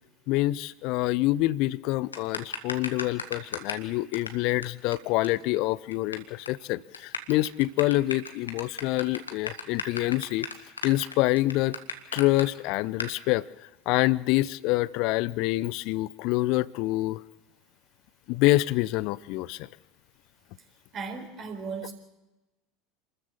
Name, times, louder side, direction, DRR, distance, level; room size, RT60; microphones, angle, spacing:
voice 1, 0.3-10.5 10.8-11.8 12.1-17.2 18.3-19.7, left 18 dB, 55° left, 22 dB, 0.6 m, -26 dB
sound 1, 2.1-3.9 4.1-4.3 4.6-4.7 4.9-5.0 5.2-5.3 5.6-6.2 6.5-6.6 6.9-12.4 13.0-13.1, left 4 dB, 85° left, 1.7 m, -34 dB
voice 2, 20.9-21.9, right 5 dB, 35° right, 4 dB, 4.3 m, -36 dB
27.5 x 14.0 x 7.3 m, 1.1 s
figure-of-eight pair, 75°, 0 cm